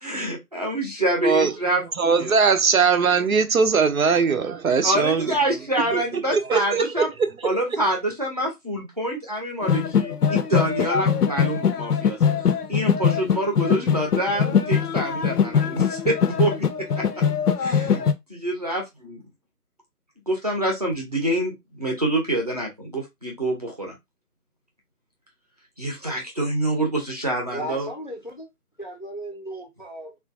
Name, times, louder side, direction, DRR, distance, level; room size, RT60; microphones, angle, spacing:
voice 1, 0.0-1.8 2.2-2.4 4.8-7.1 7.4-16.7 17.6-18.0 18.3-19.2 20.3-23.9 25.8-27.9, right 1 dB, 25° right, 0.7 m, -26 dB
voice 2, 2.0-5.3 5.9-6.0 6.3-7.3, right 5 dB, 65° right, 0.6 m, -20 dB
sound 1, 9.6-18.1, left 7 dB, 75° left, 0.6 m, -22 dB
voice 3, 27.5-28.5 28.8-30.2, right 1 dB, 35° left, 0.5 m, -35 dB
3.3 x 2.5 x 2.5 m
figure-of-eight pair, 165°, 46 cm